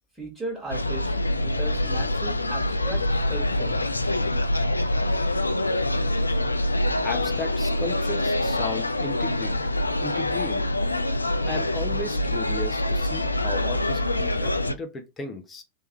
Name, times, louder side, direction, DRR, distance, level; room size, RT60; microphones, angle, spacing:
voice 1, 0.1-4.0, right 2 dB, ahead, 1.8 m, -37 dB
sound 1, 0.7-14.7, left 1 dB, 85° left, 0.3 m, -25 dB
voice 2, 7.0-9.6 10.0-10.6 11.4-15.6, left 2 dB, 20° left, 0.6 m, -35 dB
3.3 x 3.2 x 3.0 m
figure-of-eight pair, 90°, 0 cm